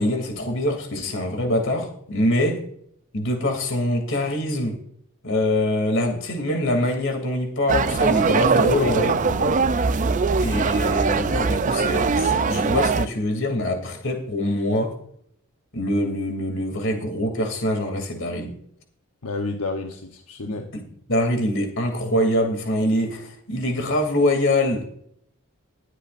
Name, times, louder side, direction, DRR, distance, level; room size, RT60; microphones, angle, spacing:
voice 1, 0.0-2.6 3.1-4.8 5.2-9.2 10.4-14.9 15.7-18.5 20.4-20.8 21.1-24.8, left 1 dB, 55° left, 3 dB, 2.8 m, -24 dB
sound 1, 7.7-13.1, right 4 dB, 35° right, 0.4 m, -21 dB
voice 2, 8.8-9.6 19.2-20.7, left 3 dB, 85° left, 3 dB, 1.0 m, -30 dB
21.0 x 8.2 x 2.6 m, 0.67 s
head